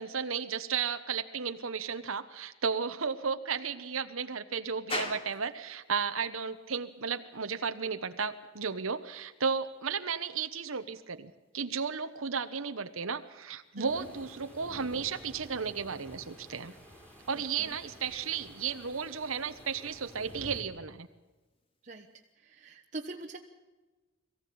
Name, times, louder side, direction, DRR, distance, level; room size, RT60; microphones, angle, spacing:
voice 1, 0.0-16.7 17.3-21.1, right 6 dB, 85° right, 8 dB, 1.1 m, -34 dB
sound 1, 4.9-22.4, left 2 dB, 25° left, 2.4 m, -49 dB
sound 2, 13.8-20.6, equal, 5° left, 4.3 m, -51 dB
voice 2, 22.6-23.4, right 2 dB, 35° right, 0 dB, 1.2 m, -42 dB
23.0 x 15.5 x 8.6 m, 1.2 s
head